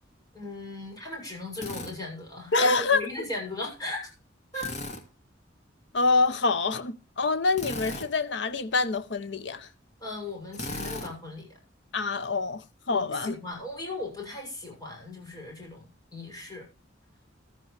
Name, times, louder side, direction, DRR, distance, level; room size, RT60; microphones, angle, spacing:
voice 1, 0.3-4.1 4.5-4.7 10.0-11.6 12.9-16.7, left 2 dB, 20° left, 6.9 m, -37 dB
Drill, 1.6-1.9 4.5-5.0 7.5-8.1 10.5-11.1, left 2 dB, 40° left, 2.1 m, -36 dB
voice 2, 2.5-3.0 5.9-9.7 11.9-13.4, left 3 dB, 65° left, 0.8 m, -26 dB
15.0 x 13.0 x 3.3 m
head